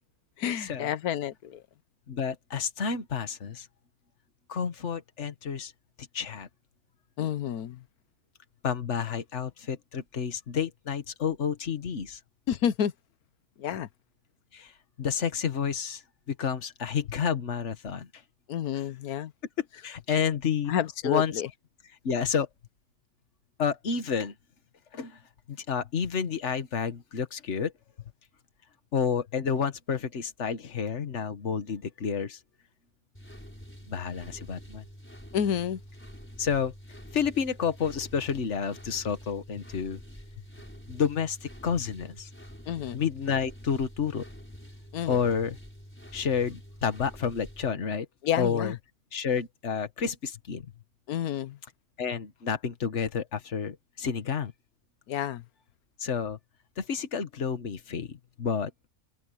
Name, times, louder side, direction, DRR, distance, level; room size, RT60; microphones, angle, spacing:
voice 1, 0.4-1.6 7.2-7.8 12.5-12.9 13.6-13.9 18.5-19.3 20.7-21.5 35.3-35.8 42.7-43.0 44.9-45.2 48.2-48.8 51.1-51.6 55.1-55.4, left 9 dB, 75° left, 1.4 m, -29 dB
voice 2, 2.1-3.7 4.5-5.7 6.1-6.5 8.6-12.2 14.5-14.7 15.0-16.0 16.3-18.1 19.6-20.7 21.0-21.4 22.0-22.5 23.6-24.3 24.9-25.2 25.5-27.7 28.9-32.4 33.9-34.9 36.4-36.7 37.1-40.0 40.9-42.3 42.9-44.3 45.1-45.6 46.1-48.1 48.4-48.7 49.1-50.7 52.0-54.5 56.0-56.4 56.8-58.7, left 7 dB, 50° left, 1.7 m, -30 dB
sound 1, 33.1-47.7, equal, 5° left, 5.2 m, -47 dB
omnidirectional pair, 1.6 m